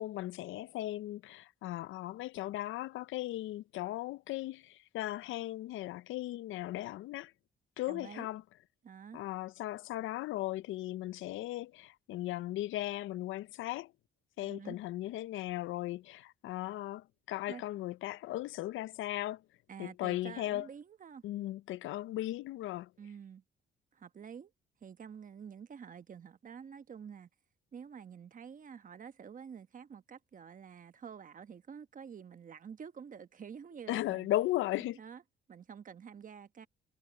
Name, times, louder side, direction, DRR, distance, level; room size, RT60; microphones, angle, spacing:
voice 1, 0.0-7.3 7.8-8.4 9.1-13.9 14.4-19.4 19.8-20.7 21.2-22.9 33.9-35.0, left 15 dB, 80° left, 0.5 m, -37 dB
voice 2, 7.9-8.3 8.8-9.2 14.4-14.8 17.5-17.6 19.7-21.2 23.0-23.4 23.9-24.5 24.8-27.3 27.7-34.3 34.9-35.2 35.5-36.7, right 7 dB, 40° right, 1.1 m, -48 dB
cardioid pair, 90°, 20 cm